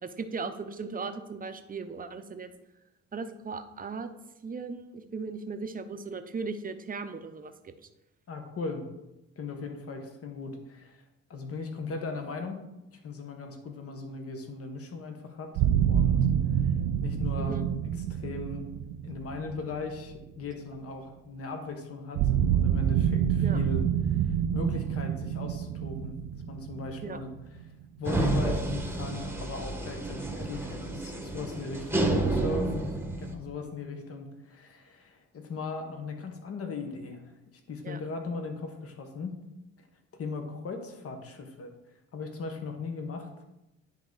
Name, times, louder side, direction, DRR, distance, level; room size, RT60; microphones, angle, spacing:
voice 1, 0.0-2.5 3.1-4.1 4.4-7.7 17.4-17.6 23.4-23.6 27.0-27.2 37.8-38.0, right 4 dB, 30° right, 9 dB, 0.7 m, -37 dB
voice 2, 8.3-8.9 9.4-11.0 11.3-12.6 13.0-16.2 17.0-17.6 18.1-18.6 19.0-22.2 22.5-23.8 24.1-26.2 26.5-27.3 28.0-32.9 33.2-37.3 37.7-39.4 40.2-41.7 42.1-43.3, left 3 dB, 50° left, 5 dB, 1.2 m, -38 dB
sound 1, 15.6-20.5 22.2-27.8, right 9 dB, 85° right, 0.5 m, -27 dB
sound 2, 28.0-33.3, right 2 dB, 5° right, 1.1 m, -30 dB
10.0 x 3.6 x 3.9 m, 0.92 s
cardioid pair, 90°, 30 cm